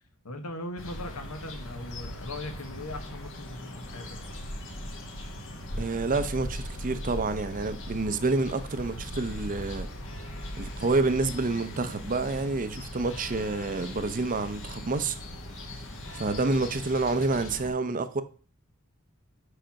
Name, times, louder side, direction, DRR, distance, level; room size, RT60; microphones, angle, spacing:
voice 1, 0.2-4.2, left 1 dB, 80° left, 1.2 m, -39 dB
sound 1, 0.8-17.7, equal, 60° left, 1.5 m, -39 dB
voice 2, 5.8-9.9 10.6-15.2 16.1-18.2, right 3 dB, 40° right, 0.6 m, -28 dB
5.8 x 5.1 x 5.8 m
head